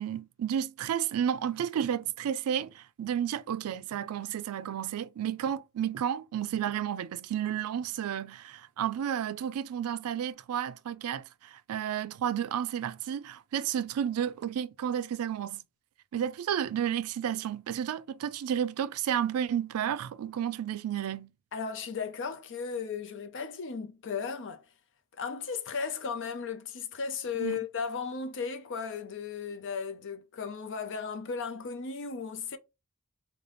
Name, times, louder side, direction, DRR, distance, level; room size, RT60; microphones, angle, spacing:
voice 1, 0.0-15.6 16.1-21.3 27.4-27.6, right 9 dB, 85° right, 0.3 m, -32 dB
voice 2, 21.5-24.6 25.2-32.6, left 5 dB, 60° left, 0.5 m, -35 dB
3.3 x 2.2 x 3.8 m
head